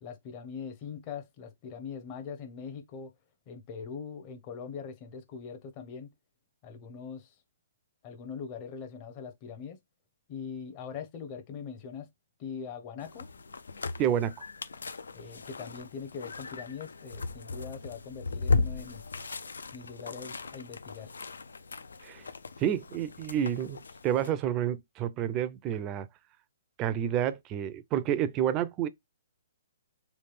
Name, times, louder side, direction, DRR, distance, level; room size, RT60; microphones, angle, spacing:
voice 1, 0.0-3.1 3.5-6.1 6.6-7.3 8.0-9.8 10.3-12.1 12.4-13.3 15.1-19.0 19.7-21.1, left 6 dB, 35° left, 0.8 m, -42 dB
sound 1, 13.0-24.3, left 3 dB, 85° left, 0.5 m, -36 dB
voice 2, 14.0-14.3 22.0-22.3 22.6-26.1 26.8-28.9, right 10 dB, 25° right, 0.4 m, -29 dB
3.3 x 2.3 x 3.3 m
hypercardioid pair, 140°, 0 cm